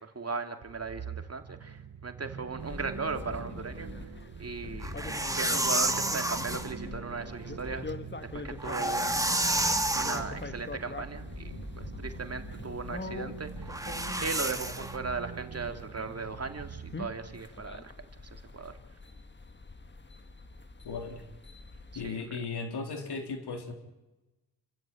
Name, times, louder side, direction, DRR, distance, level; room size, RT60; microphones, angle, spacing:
voice 1, 0.0-4.1 4.4-5.0 5.3-7.9 8.3-9.2 9.9-13.9 14.2-17.9 18.2-18.8 21.9-22.4, right 4 dB, 40° right, 7 dB, 2.6 m, -37 dB
sound 1, 0.6-17.5, right 7 dB, 60° right, 1.3 m, -44 dB
sound 2, 2.6-22.1, left 3 dB, 30° left, 1.6 m, -44 dB
sound 3, 4.8-6.7 8.5-10.3 13.7-15.0, right 1 dB, 10° right, 2.0 m, -30 dB
voice 2, 20.8-21.2 21.9-23.7, left 4 dB, 80° left, 5 dB, 3.7 m, -36 dB
29.5 x 14.0 x 9.2 m, 1.0 s
cardioid pair, 70°, 39 cm